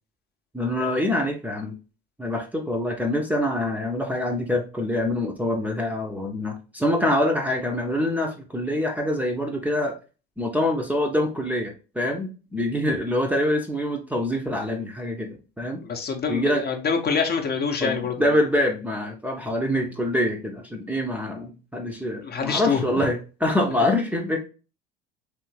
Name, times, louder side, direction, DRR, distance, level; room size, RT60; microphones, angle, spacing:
voice 1, 0.5-1.7 2.2-9.9 10.4-15.8 16.3-16.6 17.8-24.4, left 1 dB, 5° right, -1 dB, 0.8 m, -25 dB
voice 2, 15.8-18.1 22.2-23.0, left 5 dB, 30° left, 4 dB, 0.9 m, -25 dB
3.4 x 3.3 x 3.2 m, 0.33 s
hypercardioid pair, 75°, 31 cm